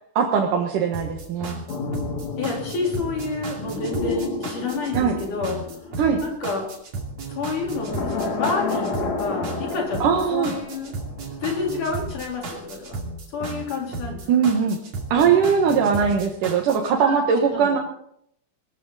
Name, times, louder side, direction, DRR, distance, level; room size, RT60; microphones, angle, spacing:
voice 1, 0.2-1.6 4.9-5.2 6.0-6.2 10.0-10.6 14.3-14.8 15.1-17.8, right 6 dB, 85° right, 0 dB, 3.1 m, -20 dB
sound 1, 0.9-16.9, right 3 dB, 55° right, 3.7 m, -34 dB
sound 2, 1.7-6.8 7.7-11.6 11.9-12.1, left 4 dB, 60° left, 3.1 m, -31 dB
voice 2, 2.4-5.9 6.2-6.7 7.3-10.9 11.4-13.0 13.3-14.2 17.0-17.8, left 3 dB, 75° left, 0 dB, 5.5 m, -29 dB
20.0 x 14.5 x 4.1 m, 0.71 s
omnidirectional pair, 3.6 m